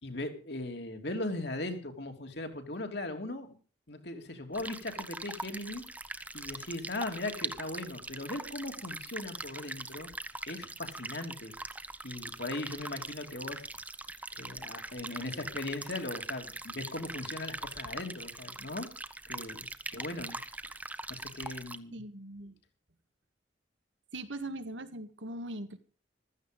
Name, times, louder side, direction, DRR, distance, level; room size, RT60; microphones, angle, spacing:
voice 1, 0.0-3.5 3.9-5.8 6.3-10.1 10.5-11.5 12.0-13.6 14.3-18.9 19.3-19.7 19.9-20.4 21.1-22.0, left 2 dB, 60° left, 5 dB, 2.9 m, -39 dB
sound 1, 4.5-21.8, right 2 dB, 10° right, 0.8 m, -42 dB
voice 2, 21.9-22.5 24.1-25.8, right 1 dB, 85° right, 9 dB, 1.8 m, -40 dB
15.5 x 14.0 x 5.3 m, 0.38 s
head